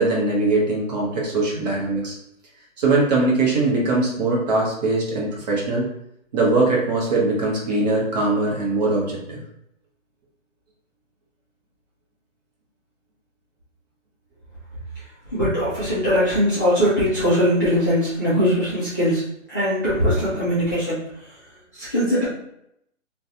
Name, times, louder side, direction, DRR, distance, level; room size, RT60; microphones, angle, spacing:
voice 1, 0.0-2.1 2.8-5.9 6.3-9.4, right 2 dB, 35° right, -3 dB, 0.8 m, -21 dB
voice 2, 15.3-19.2 19.5-21.0 21.7-22.3, equal, 15° left, -14 dB, 0.4 m, -20 dB
2.4 x 2.3 x 2.7 m, 0.76 s
hypercardioid pair, 145°, 37 cm